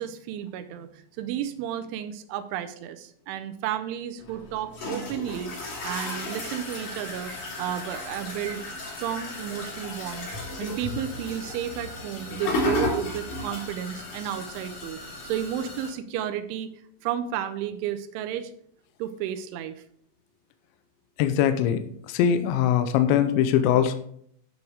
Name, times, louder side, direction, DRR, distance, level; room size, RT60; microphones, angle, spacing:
voice 1, 0.0-7.3 7.6-10.3 10.6-16.7 17.0-18.5 19.0-19.7, right 10 dB, 85° right, 10 dB, 3.0 m, -32 dB
sound 1, 4.2-15.9, left 1 dB, 45° left, 4.9 m, -34 dB
voice 2, 21.2-21.8 22.1-24.0, left 9 dB, 85° left, 9 dB, 2.9 m, -21 dB
10.5 x 6.4 x 4.7 m, 0.65 s
omnidirectional pair, 5.6 m